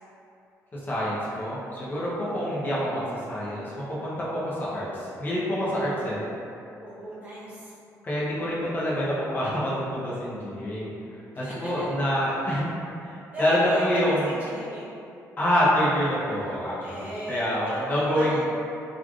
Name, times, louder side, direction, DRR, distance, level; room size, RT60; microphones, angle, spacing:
voice 1, 0.7-6.2 8.0-10.9 11.4-12.6 13.4-14.2 15.4-18.4, equal, 30° left, -7 dB, 0.8 m, -26 dB
voice 2, 6.8-7.7 11.3-11.8 13.3-14.9 16.4-16.6 16.8-17.5 17.9-18.4, equal, 25° right, -9 dB, 1.3 m, -35 dB
3.1 x 2.5 x 2.4 m, 2.6 s
cardioid pair, 95°, 6 cm